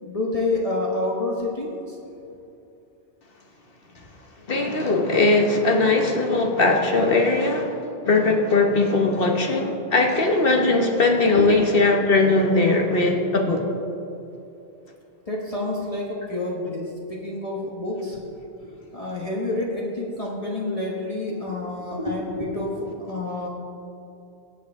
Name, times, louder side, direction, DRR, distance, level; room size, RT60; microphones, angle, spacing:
voice 1, 0.0-1.9 11.3-11.5 15.3-18.2 18.9-23.5, left 2 dB, 35° left, -4 dB, 1.3 m, -28 dB
voice 2, 4.5-13.7, left 3 dB, 60° left, 2 dB, 1.2 m, -20 dB
20.0 x 7.8 x 3.5 m, 2.7 s
omnidirectional pair, 1.1 m